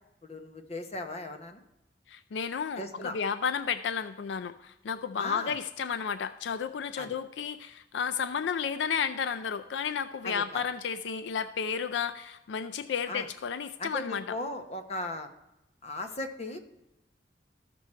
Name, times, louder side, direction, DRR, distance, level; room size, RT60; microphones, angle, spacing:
voice 1, 0.2-1.6 2.8-3.2 5.2-5.6 7.0-7.2 10.2-10.6 13.1-13.3 13.8-15.3 15.8-16.6, left 2 dB, 40° left, 7 dB, 0.9 m, -37 dB
voice 2, 2.1-14.4, left 6 dB, 80° left, 11 dB, 0.4 m, -32 dB
13.5 x 6.1 x 4.3 m, 0.92 s
head